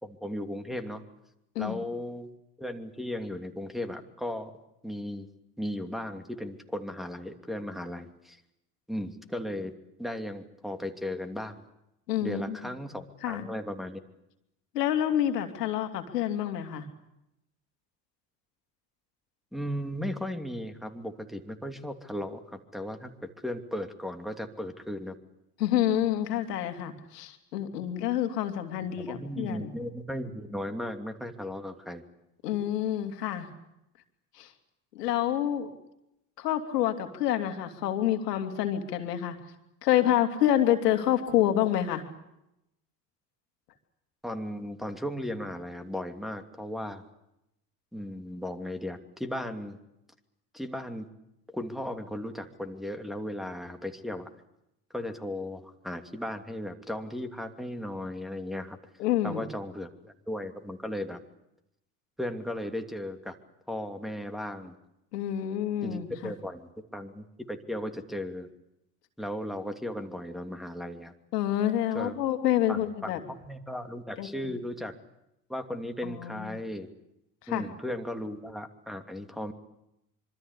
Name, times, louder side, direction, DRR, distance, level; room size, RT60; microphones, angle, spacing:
voice 1, 0.0-1.0 1.6-2.3 2.6-4.5 4.8-5.3 5.6-8.4 8.9-9.7 10.0-11.6 12.2-14.0 19.5-25.1 29.0-32.0 44.2-47.0 47.9-49.8 50.5-51.0 51.5-54.3 54.9-58.8 59.2-61.2 62.2-63.4 63.7-64.8 65.8-68.5 69.2-71.1 71.9-72.1 72.7-74.9 75.5-76.9 77.5-79.5, left 1 dB, ahead, 4 dB, 2.8 m, -36 dB
voice 2, 12.1-12.6 13.2-13.5 14.7-16.9 25.6-29.7 32.4-33.5 34.3-34.5 34.9-35.7 36.4-39.4 39.8-42.0 59.0-59.5 65.1-66.3 71.3-73.2 74.2-74.5 76.0-76.6 77.4-77.7, left 11 dB, 75° left, 7 dB, 2.9 m, -28 dB
25.5 x 25.0 x 8.4 m, 0.87 s
hypercardioid pair, 70°, 48 cm